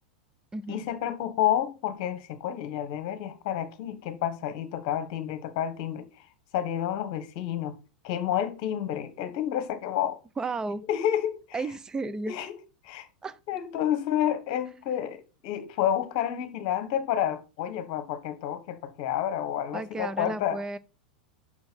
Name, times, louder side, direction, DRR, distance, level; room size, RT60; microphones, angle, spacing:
voice 1, 0.7-6.1 6.5-7.8 8.0-10.2 10.9-11.6 12.0-12.6 12.8-13.1 13.5-20.6, left 10 dB, 50° left, 1.1 m, -30 dB
voice 2, 10.4-10.8 11.5-12.3 13.2-13.4 19.7-20.8, right 3 dB, 15° right, 0.5 m, -33 dB
6.1 x 4.4 x 5.7 m
figure-of-eight pair, 90°, 4 cm